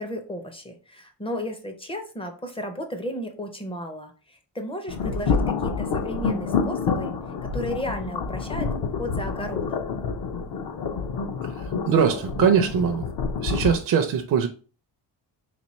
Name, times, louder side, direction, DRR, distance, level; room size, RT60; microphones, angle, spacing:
voice 1, 0.0-7.1 7.4-9.9, equal, 15° left, 0.5 m, -34 dB
sound 1, 4.9-13.8, left 5 dB, 55° left, 0.6 m, -28 dB
voice 2, 11.4-13.1 13.4-14.5, right 7 dB, 50° right, 0.4 m, -22 dB
4.2 x 2.9 x 3.0 m
wide cardioid pair, 165°, 43 cm